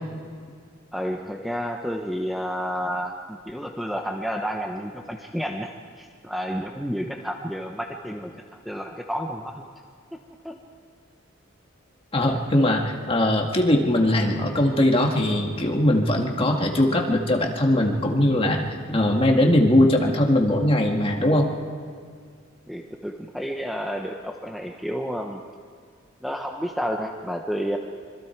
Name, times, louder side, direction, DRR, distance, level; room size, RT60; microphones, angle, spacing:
voice 1, 0.9-9.6 10.4-10.6 22.7-25.4 26.2-27.8, equal, ahead, 2 dB, 0.9 m, -30 dB
voice 2, 12.1-18.6 18.9-21.5, left 1 dB, 30° left, 1 dB, 2.0 m, -20 dB
25.5 x 24.5 x 4.6 m, 2.1 s
head